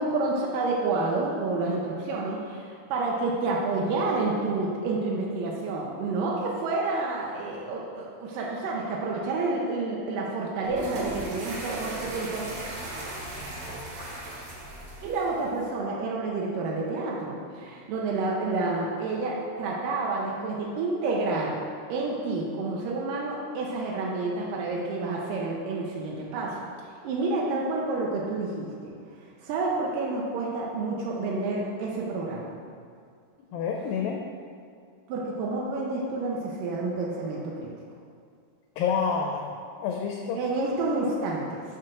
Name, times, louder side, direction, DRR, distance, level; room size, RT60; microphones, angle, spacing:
voice 1, 0.0-12.4 15.0-21.6 21.9-26.6 27.0-28.9 29.4-32.6 35.1-37.7 40.4-41.6, right 3 dB, 80° right, -3 dB, 2.1 m, -29 dB
sound 1, 10.6-15.7, right 2 dB, 60° right, 2.6 m, -37 dB
voice 2, 33.5-34.2 38.8-40.4, left 6 dB, 80° left, 2 dB, 2.1 m, -28 dB
5.9 x 4.8 x 6.1 m, 2.2 s
omnidirectional pair, 4.6 m